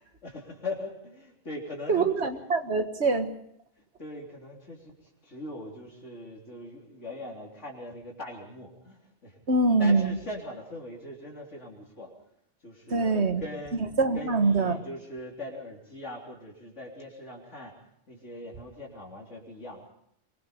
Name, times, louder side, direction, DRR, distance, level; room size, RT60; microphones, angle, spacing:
voice 1, 0.2-2.1 4.0-4.9 5.2-9.4 9.8-12.1 12.6-13.8 14.1-17.7 18.1-19.8, left 1 dB, 70° left, -1 dB, 3.9 m, -40 dB
voice 2, 1.9-3.3 9.5-10.2 12.9-13.4 14.0-14.8, right 3 dB, 60° right, 8 dB, 1.9 m, -24 dB
24.0 x 22.5 x 5.2 m, 0.71 s
omnidirectional pair, 1.3 m